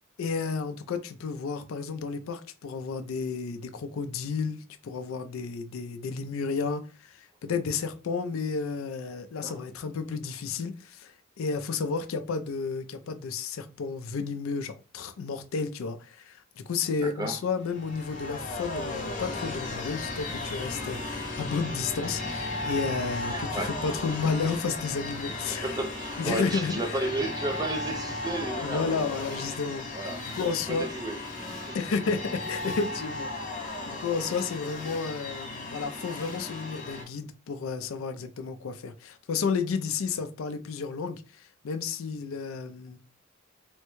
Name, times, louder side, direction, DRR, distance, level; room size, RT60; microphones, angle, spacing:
voice 1, 0.2-25.8 26.2-27.1 28.6-29.8 30.3-30.8 31.7-43.0, left 5 dB, 75° left, 0.4 m, -32 dB
voice 2, 17.0-17.4 23.3-24.2 25.5-29.5 29.9-30.4 30.7-31.8, right 2 dB, 20° right, 0.5 m, -34 dB
sound 1, 17.6-37.0, left 2 dB, 40° left, 0.9 m, -35 dB
3.5 x 2.1 x 3.0 m
head